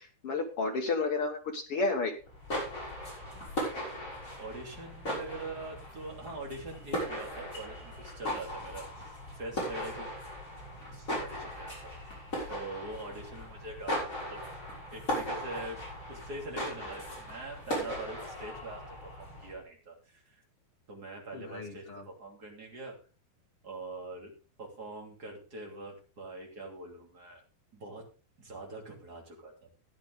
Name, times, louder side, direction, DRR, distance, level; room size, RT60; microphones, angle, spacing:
voice 1, 0.0-2.1 21.3-22.0, left 3 dB, 70° left, 3 dB, 1.3 m, -32 dB
sound 1, 2.2-19.6, equal, 20° left, 6.1 m, -38 dB
voice 2, 4.4-8.9 9.3-10.1 10.9-11.9 12.5-14.4 14.9-20.4 20.9-23.0 23.6-24.3 24.6-27.4 27.7-28.1 28.4-29.7, right 2 dB, 25° right, 1 dB, 2.9 m, -43 dB
14.5 x 9.9 x 3.7 m, 0.33 s
omnidirectional pair, 4.7 m